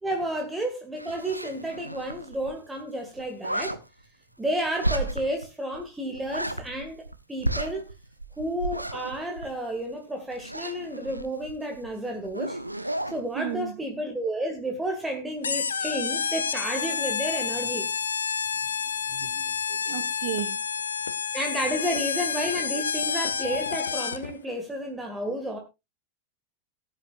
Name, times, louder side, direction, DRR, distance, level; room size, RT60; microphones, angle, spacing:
voice 1, 0.0-3.8 4.4-7.0 7.3-7.9 8.4-12.6 13.1-17.9 21.3-25.6, right 1 dB, 10° right, 2.0 m, -31 dB
sound 1, 1.0-2.5 2.7-2.8 3.1-3.8 4.8-5.4 5.7-5.8 6.1-7.1 7.4-9.9 10.3-11.9 12.2-13.2, right 1 dB, 90° right, 0.8 m, -32 dB
voice 2, 13.3-13.7 19.1-20.6, right 13 dB, 50° right, 1.2 m, -34 dB
sound 2, 15.4-24.3, left 6 dB, 70° left, 0.6 m, -29 dB
17.5 x 8.8 x 2.5 m
figure-of-eight pair, 90°, 0 cm